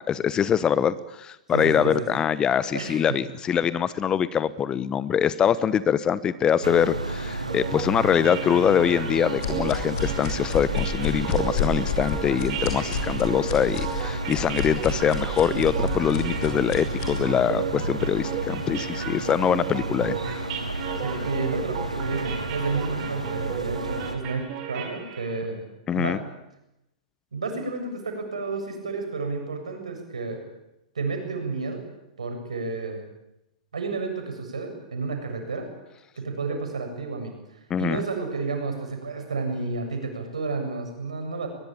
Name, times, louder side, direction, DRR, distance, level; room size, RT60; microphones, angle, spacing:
voice 1, 0.0-20.4 25.9-26.2 37.7-38.0, left 8 dB, 20° left, 17 dB, 1.0 m, -24 dB
voice 2, 1.5-2.1 2.7-3.2 12.9-13.2 21.0-25.6 25.9-26.2 27.3-30.4 30.9-31.8 32.2-33.0 33.7-35.7 36.2-37.3 37.8-41.5, right 3 dB, 70° right, 4 dB, 7.4 m, -31 dB
sound 1, 6.6-24.2, right 2 dB, 90° right, 3.2 m, -32 dB
sound 2, 7.5-25.4, right 8 dB, 40° right, 4.8 m, -35 dB
sound 3, 9.4-17.2, left 6 dB, 45° left, 6.9 m, -31 dB
22.5 x 22.0 x 8.9 m, 0.88 s
figure-of-eight pair, 105°, 4 cm